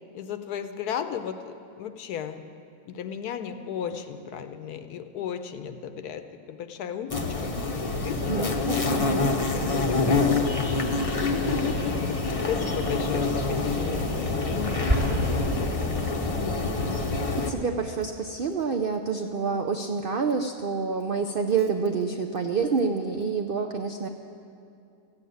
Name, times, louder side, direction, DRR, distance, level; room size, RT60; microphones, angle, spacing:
voice 1, 0.1-2.5 2.9-6.2 6.5-16.6, left 8 dB, 75° left, 9 dB, 1.2 m, -35 dB
sound 1, 7.1-17.5, left 3 dB, 30° left, 0.7 m, -26 dB
voice 2, 8.3-9.2 17.5-24.1, right 5 dB, 80° right, 5 dB, 0.5 m, -28 dB
Explosion, 14.9-16.7, right 1 dB, 20° right, 1.5 m, -28 dB
14.5 x 8.4 x 9.3 m, 2.5 s
omnidirectional pair, 1.8 m